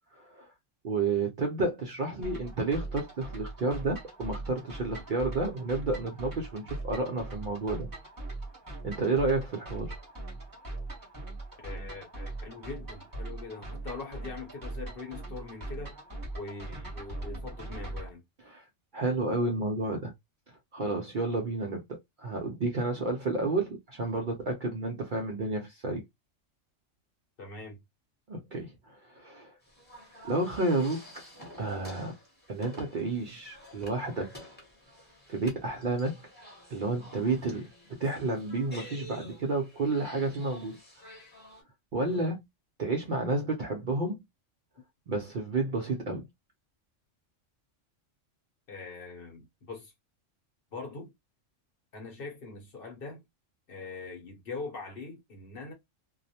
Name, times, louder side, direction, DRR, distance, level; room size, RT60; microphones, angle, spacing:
voice 1, 0.1-0.5 0.8-7.9 8.8-10.0 18.5-18.6 18.9-20.1 20.5-21.8 22.2-26.0 28.3-29.6 30.2-31.2 31.6-32.1 32.5-34.3 35.3-36.2 36.7-37.7 38.0-41.1 41.9-42.4 42.8-44.2 45.1-46.3, right 3 dB, 60° right, 0.5 m, -31 dB
sound 1, 2.2-18.1, right 2 dB, 20° right, 0.9 m, -40 dB
voice 2, 11.6-15.9 16.3-18.2 27.4-27.8 48.7-49.9 50.7-51.1 51.9-53.2 53.7-55.7, left 3 dB, 50° left, 0.9 m, -42 dB
sound 2, 29.6-41.6, equal, 10° left, 0.8 m, -50 dB
2.3 x 2.0 x 2.6 m
omnidirectional pair, 1.3 m